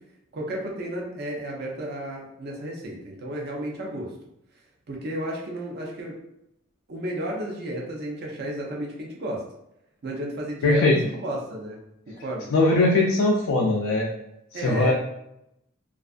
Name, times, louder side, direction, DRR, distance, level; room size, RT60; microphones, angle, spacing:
voice 1, 0.3-4.1 4.9-6.2 6.9-9.4 10.0-11.8 12.1-12.5 14.5-14.9, right 1 dB, 50° right, -1 dB, 0.5 m, -32 dB
voice 2, 10.6-11.0 12.5-14.1 14.5-14.9, left 2 dB, 75° left, -2 dB, 0.4 m, -20 dB
2.5 x 2.3 x 2.3 m, 0.81 s
head